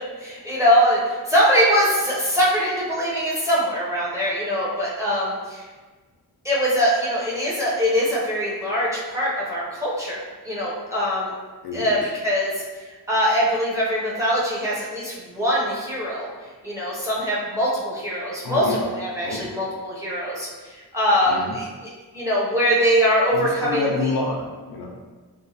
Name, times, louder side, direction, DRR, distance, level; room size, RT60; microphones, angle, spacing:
voice 1, 0.2-5.6 6.4-11.3 11.7-12.6 13.1-16.3 16.6-21.7 22.1-23.9, equal, 10° right, -7 dB, 0.6 m, -22 dB
voice 2, 11.6-12.0 18.4-18.9 19.2-19.6 21.3-21.6 23.3-25.0, left 3 dB, 70° left, 0 dB, 0.5 m, -28 dB
2.9 x 2.1 x 2.7 m, 1.3 s
wide cardioid pair, 145°, 39 cm